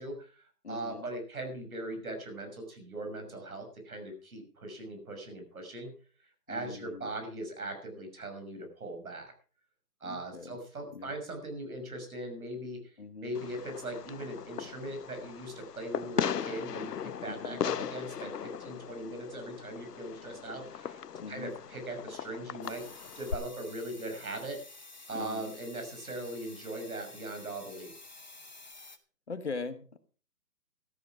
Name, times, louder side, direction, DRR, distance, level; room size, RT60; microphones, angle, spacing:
voice 1, 0.0-5.9 6.5-9.3 10.0-12.9 13.2-21.0 21.3-22.9 23.1-24.6 25.1-27.9, right 1 dB, 65° right, 5 dB, 6.3 m, -40 dB
voice 2, 0.6-1.1 6.5-7.1 10.0-10.6 10.9-11.1 13.0-13.3 17.3-17.6 21.2-21.6 25.1-25.5 29.3-30.0, left 4 dB, 45° left, 10 dB, 1.3 m, -41 dB
Fireworks, 13.3-23.3, left 8 dB, 80° left, 0.9 m, -38 dB
sound 1, 22.6-29.0, left 2 dB, 30° left, 0.8 m, -51 dB
13.5 x 12.5 x 4.8 m, 0.39 s
hypercardioid pair, 180°, 47 cm